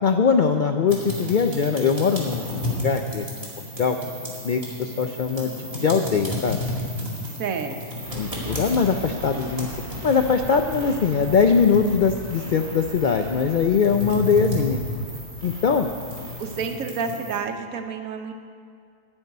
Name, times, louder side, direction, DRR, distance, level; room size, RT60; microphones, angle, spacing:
voice 1, 0.0-3.2 3.8-4.0 4.4-6.6 8.1-9.7 10.0-14.8 15.4-15.9, left 5 dB, 70° left, 5 dB, 0.4 m, -21 dB
sound 1, 0.9-17.3, left 1 dB, 25° right, 2.3 m, -33 dB
voice 2, 7.4-8.0 16.4-18.3, right 5 dB, 75° right, 6 dB, 1.3 m, -30 dB
sound 2, 8.0-16.6, right 1 dB, 45° right, 2.7 m, -41 dB
13.0 x 5.4 x 9.3 m, 2.2 s
omnidirectional pair, 1.5 m